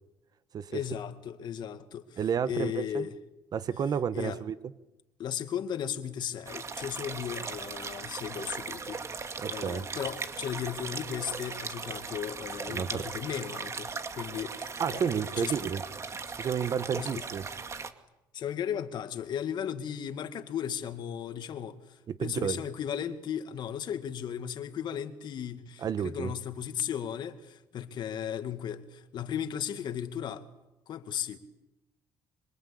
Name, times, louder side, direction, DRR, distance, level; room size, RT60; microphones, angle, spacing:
voice 1, 0.7-2.2 2.5-3.2 4.1-4.4 5.2-9.0 9.5-15.1 15.4-15.5 17.0-17.2 18.3-30.5 30.9-31.4, left 9 dB, 60° left, 2.2 m, -36 dB
voice 2, 2.2-3.1 3.5-4.7 9.4-9.8 12.7-13.1 14.8-15.8 16.4-17.4 22.1-22.6 25.8-26.3, right 7 dB, 50° right, 1.4 m, -31 dB
sound 1, 6.5-17.9, right 5 dB, 35° right, 2.3 m, -38 dB
26.0 x 26.0 x 8.6 m
cardioid pair, 90°, 8 cm